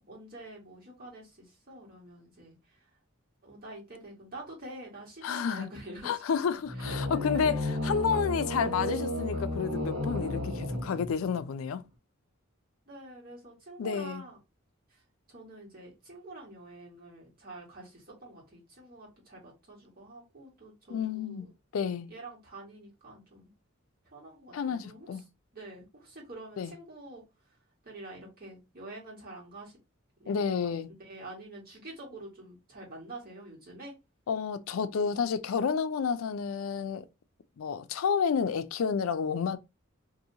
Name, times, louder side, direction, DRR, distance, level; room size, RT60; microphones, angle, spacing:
voice 1, 0.0-2.8 3.4-6.2 6.7-7.4 12.9-14.4 14.9-15.0 15.3-21.5 22.1-23.5 24.1-25.2 25.5-27.2 27.8-29.8 30.2-30.6 30.9-33.9, right 2 dB, 45° right, 1.5 m, -47 dB
voice 2, 5.2-5.7 6.0-7.5 7.8-11.8 13.8-14.2 20.9-21.5 21.7-22.1 24.5-25.2 26.6-26.7 30.3-30.9 34.3-37.0 37.6-39.6, left 6 dB, 75° left, 0.4 m, -30 dB
sound 1, 6.7-11.4, left 1 dB, 65° right, 1.2 m, -33 dB
2.8 x 2.6 x 2.7 m
head